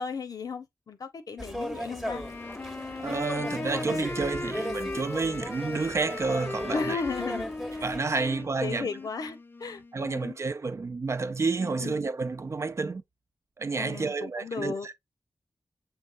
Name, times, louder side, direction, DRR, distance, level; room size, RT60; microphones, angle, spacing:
voice 1, 0.0-2.2 6.7-7.5 8.2-8.3 8.6-10.4 11.6-12.0 13.8-14.9, left 4 dB, 85° left, 0.8 m, -35 dB
sound 1, 1.4-8.0, equal, 5° right, 0.9 m, -37 dB
Wind instrument woodwind instrument, 2.1-9.9, left 3 dB, 35° left, 0.5 m, -37 dB
voice 2, 3.0-7.0 7.8-8.9 9.9-13.0 13.6-14.9, right 4 dB, 50° right, 0.5 m, -30 dB
6.4 x 3.3 x 2.4 m
wide cardioid pair, 75°, 6 cm